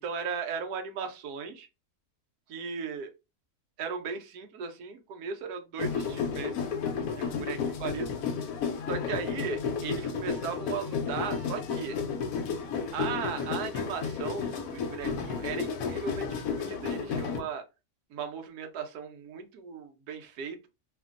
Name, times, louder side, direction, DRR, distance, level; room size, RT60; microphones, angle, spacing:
voice 1, 0.0-1.7 2.5-3.1 3.8-6.6 7.4-8.1 8.9-12.0 12.9-17.6 18.1-20.7, right 6 dB, 85° right, 1.2 m, -37 dB
sound 1, 5.8-17.4, left 6 dB, 75° left, 1.0 m, -32 dB
2.8 x 2.5 x 2.4 m
omnidirectional pair, 1.6 m